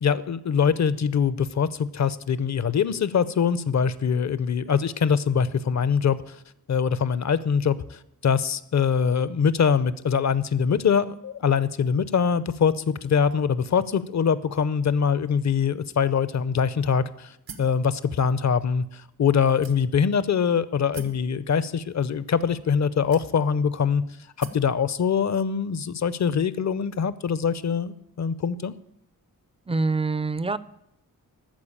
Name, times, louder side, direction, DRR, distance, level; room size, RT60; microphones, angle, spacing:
voice 1, 0.0-6.4 6.7-17.3 17.6-24.0 24.4-28.7, left 6 dB, 50° left, 17 dB, 0.5 m, -23 dB
sound 1, 17.5-17.8 18.6-18.7 19.6-20.1 20.9-21.3 22.2-22.3 23.1-23.6 24.4-24.7, right 5 dB, 90° right, 1.0 m, -42 dB
voice 2, 29.7-30.6, right 3 dB, 15° right, 17 dB, 0.3 m, -25 dB
13.5 x 4.7 x 8.7 m, 0.79 s
wide cardioid pair, 120°, 35 cm